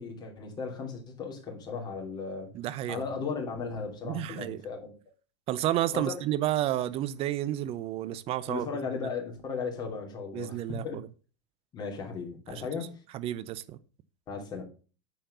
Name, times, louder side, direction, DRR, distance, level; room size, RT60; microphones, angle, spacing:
voice 1, 0.0-2.5 2.9-4.9 5.9-6.2 8.5-11.0 11.7-13.0 14.3-14.6, left 5 dB, 25° left, 2.9 m, -36 dB
voice 2, 2.5-3.0 4.0-4.6 5.5-8.7 10.3-11.1 12.5-12.6 13.1-13.8, right 13 dB, 40° right, 0.8 m, -31 dB
9.2 x 4.5 x 5.5 m
supercardioid pair, 120°, 15 cm